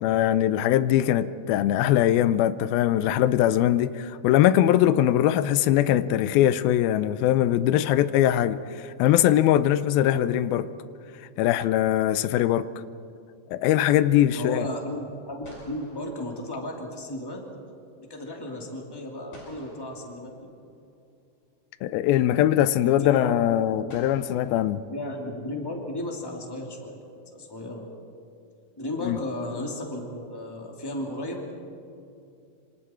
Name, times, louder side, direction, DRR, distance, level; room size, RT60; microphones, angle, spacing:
voice 1, 0.0-8.6 9.0-10.7 11.4-12.7 13.5-14.7 21.8-24.8 29.0-29.2, left 12 dB, 85° left, 14 dB, 2.5 m, -21 dB
voice 2, 14.3-17.4 18.0-20.5 22.8-24.1 24.9-27.0 27.3-27.9 28.8-31.4, left 1 dB, 5° left, 0 dB, 2.2 m, -34 dB
sound 1, 15.4-17.2 19.3-20.9 22.3-22.4 23.9-25.5, left 1 dB, 55° left, 6.8 m, -52 dB
26.5 x 26.5 x 4.5 m, 2.6 s
omnidirectional pair, 4.2 m